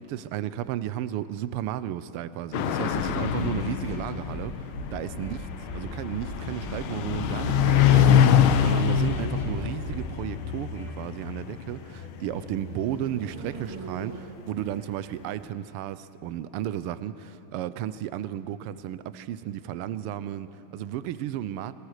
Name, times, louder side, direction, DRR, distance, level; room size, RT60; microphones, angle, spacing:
voice 1, 0.0-5.4 5.7-21.7, right 11 dB, 90° right, 14 dB, 1.6 m, -33 dB
sound 1, 2.5-13.5, left 9 dB, 75° left, 1.6 m, -25 dB
sound 2, 2.9-11.3, equal, 55° left, 4.7 m, -41 dB
sound 3, 5.5-14.2, right 3 dB, 60° right, 3.6 m, -43 dB
22.0 x 18.5 x 6.5 m, 2.9 s
omnidirectional pair, 2.4 m